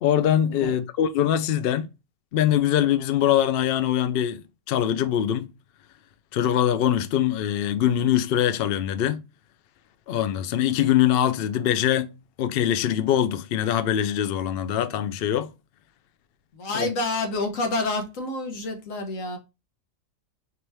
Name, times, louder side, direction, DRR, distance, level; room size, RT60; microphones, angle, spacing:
voice 1, 0.0-1.9 2.3-4.4 4.7-5.5 6.3-9.2 10.1-15.5 16.7-16.9, left 10 dB, 60° left, 0.6 m, -23 dB
voice 2, 16.5-19.4, left 2 dB, 80° left, 1.4 m, -28 dB
4.3 x 2.9 x 3.2 m
omnidirectional pair, 1.4 m